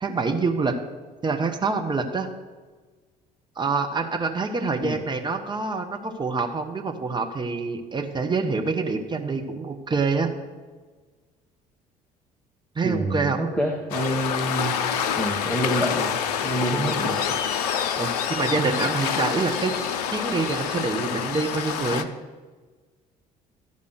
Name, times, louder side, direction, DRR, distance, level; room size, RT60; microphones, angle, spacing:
voice 1, 0.0-0.8 1.2-2.3 3.6-10.3 12.7-13.4 17.9-19.8 20.1-22.1, right 4 dB, 20° right, 5 dB, 1.0 m, -26 dB
voice 2, 12.8-14.8 15.2-16.2 16.4-17.2, right 1 dB, 5° left, 0 dB, 1.3 m, -27 dB
Waves surf, 13.9-22.0, left 8 dB, 70° left, 0.6 m, -27 dB
13.0 x 5.4 x 6.6 m, 1.4 s
figure-of-eight pair, 55°, 21 cm